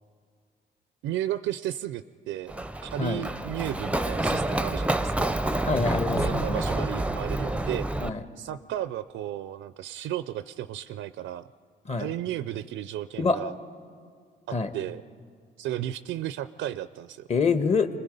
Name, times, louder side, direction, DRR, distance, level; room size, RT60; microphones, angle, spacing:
voice 1, 1.0-5.3 6.1-7.9 8.4-11.5 12.0-13.5 14.5-15.0 15.6-17.3, right 12 dB, 80° right, 14 dB, 0.5 m, -34 dB
Run, 2.5-8.1, right 1 dB, 5° right, 0.6 m, -28 dB
voice 2, 5.6-6.6 8.0-8.2 11.9-12.1 13.2-13.4 14.5-14.7 17.3-17.9, left 4 dB, 35° left, 9 dB, 1.3 m, -25 dB
26.5 x 20.0 x 5.3 m, 2.1 s
cardioid pair, 90°, 20 cm